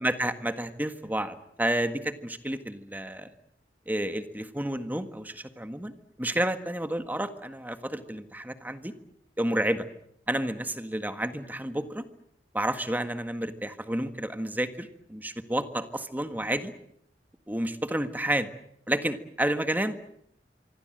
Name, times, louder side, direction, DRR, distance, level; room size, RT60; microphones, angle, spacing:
voice 1, 0.0-3.3 3.9-5.9 6.2-8.9 9.4-9.9 10.3-12.0 12.5-16.7 17.5-18.5 18.9-20.0, right 1 dB, 10° right, 9 dB, 1.6 m, -30 dB
25.5 x 24.5 x 7.8 m, 0.72 s
head